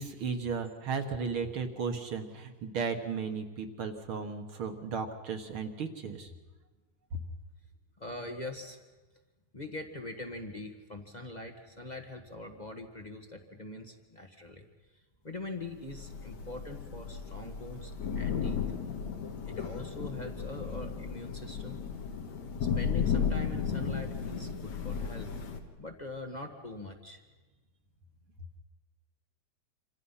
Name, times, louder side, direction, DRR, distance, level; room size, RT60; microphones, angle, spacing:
voice 1, 0.0-6.3, right 5 dB, 50° right, 6 dB, 1.9 m, -35 dB
voice 2, 8.0-8.8 9.5-14.6 15.2-18.6 19.5-21.8 22.8-25.3 25.8-27.2, left 2 dB, 25° left, 4 dB, 0.9 m, -42 dB
Thunder / Rain, 15.9-25.6, left 6 dB, 70° left, 3.0 m, -34 dB
27.0 x 26.0 x 5.7 m, 1.3 s
omnidirectional pair, 3.5 m